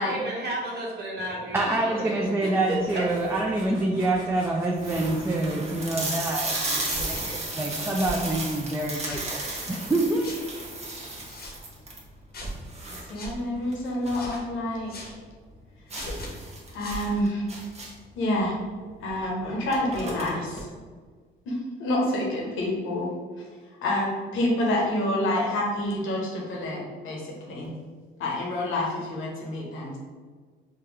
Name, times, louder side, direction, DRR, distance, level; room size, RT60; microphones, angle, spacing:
voice 1, 0.0-2.5 2.9-3.0, right 1 dB, 55° right, -4 dB, 1.2 m, -33 dB
voice 2, 1.5-10.3, right 2 dB, 10° right, -1 dB, 0.3 m, -26 dB
sound 1, 1.7-7.4, right 2 dB, 85° right, 1.0 m, -48 dB
sound 2, 2.9-3.4 4.0-4.1 4.4-4.5 4.8-14.3 14.7-14.8 15.1-15.2 15.9-18.1 19.1-19.2 19.5-20.6, right 2 dB, 35° right, 0.8 m, -34 dB
sound 3, 6.8-7.2 7.9-8.2 8.9-9.3 10.2-10.4 11.2-11.6 12.3-12.6 13.1-13.3 14.1-14.4 14.9-15.1 15.9-16.3 16.8-17.1, left 1 dB, 50° left, 0.7 m, -38 dB
voice 3, 12.9-15.1 16.7-17.5 18.1-18.6 19.0-20.7 21.5-23.1 23.8-27.7 28.2-30.0, left 1 dB, 85° left, -2 dB, 0.8 m, -28 dB
3.6 x 2.2 x 3.1 m, 1.5 s
cardioid pair, 90°, 20 cm